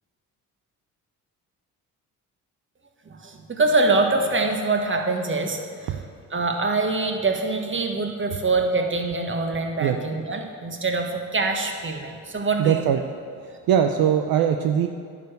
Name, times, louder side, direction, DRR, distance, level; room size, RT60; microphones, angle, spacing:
voice 1, 3.1-6.0 6.3-12.9, right 3 dB, 30° right, 3 dB, 1.5 m, -24 dB
voice 2, 12.6-13.0 13.7-14.9, right 9 dB, 65° right, 5 dB, 0.7 m, -20 dB
11.0 x 4.8 x 7.9 m, 2.2 s
supercardioid pair, 55°, 39 cm